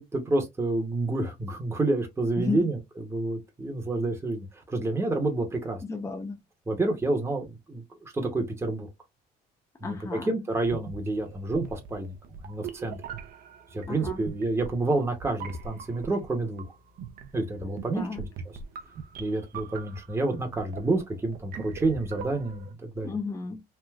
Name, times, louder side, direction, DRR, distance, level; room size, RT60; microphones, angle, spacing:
voice 1, 0.0-5.8 6.7-7.8 8.1-8.9 9.8-12.1 12.4-13.0 13.7-16.6 17.3-18.3 19.2-23.1, right 2 dB, 15° right, 0.8 m, -29 dB
voice 2, 2.4-2.7 5.8-6.4 9.8-10.3 13.9-14.2 17.9-18.2 23.0-23.6, left 4 dB, 15° left, 0.5 m, -33 dB
sound 1, 10.6-22.7, right 6 dB, 60° right, 0.5 m, -41 dB
3.3 x 2.5 x 2.3 m
cardioid pair, 110°, 17 cm